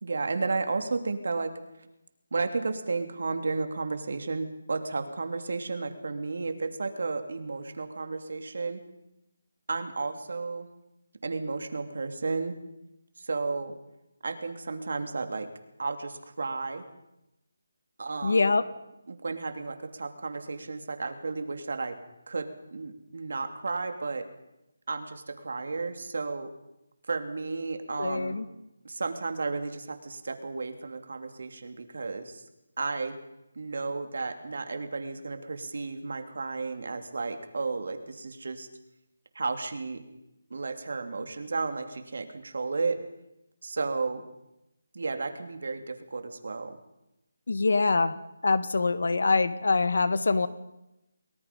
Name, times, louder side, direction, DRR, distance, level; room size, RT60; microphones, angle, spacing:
voice 1, 0.0-1.5 2.3-8.8 9.7-10.7 11.2-12.5 13.2-13.7 14.2-15.5 15.8-16.8 18.0-18.5 19.1-22.0 22.3-24.2 24.9-26.5 27.1-28.3 28.8-32.4 32.8-33.2 33.5-38.7 39.3-40.0 40.5-43.0 43.6-44.2 44.9-46.8, right 3 dB, 60° right, 7 dB, 3.0 m, -33 dB
voice 2, 18.2-18.6 28.0-28.4 47.5-48.2 48.4-50.5, left 3 dB, 65° left, 13 dB, 1.8 m, -24 dB
29.0 x 20.0 x 5.5 m, 0.88 s
hypercardioid pair, 175°, 0 cm